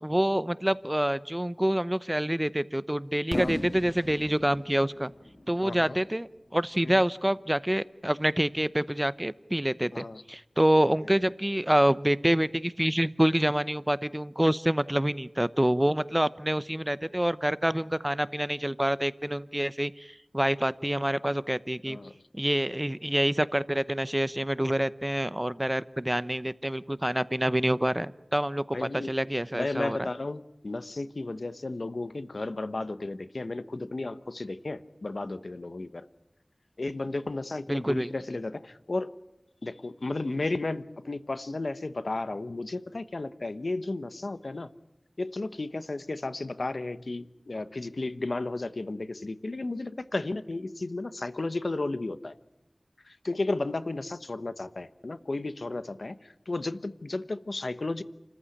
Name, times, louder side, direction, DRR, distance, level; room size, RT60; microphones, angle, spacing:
voice 1, 0.0-5.1 5.5-22.0 22.4-30.1 37.7-38.1, right 1 dB, 15° right, 16 dB, 0.8 m, -27 dB
Fireworks, 3.3-7.2, left 1 dB, 50° left, 2.1 m, -39 dB
voice 2, 5.6-6.0 6.8-7.0 9.9-10.2 21.9-22.1 28.7-29.1 29.5-36.0 36.8-39.1 39.6-44.7 45.2-52.4 53.1-58.0, left 2 dB, 85° left, 13 dB, 1.0 m, -33 dB
29.0 x 14.5 x 10.0 m, 0.87 s
wide cardioid pair, 40°, 0 cm